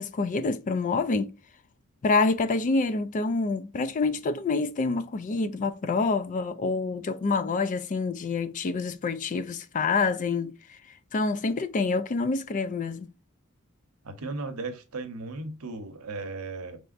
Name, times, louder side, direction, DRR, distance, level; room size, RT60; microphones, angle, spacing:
voice 1, 0.0-1.3 2.0-10.8 11.1-13.1, left 3 dB, 35° left, 0.3 m, -27 dB
voice 2, 14.0-16.8, right 3 dB, 80° right, 0.8 m, -36 dB
5.0 x 3.3 x 2.4 m
head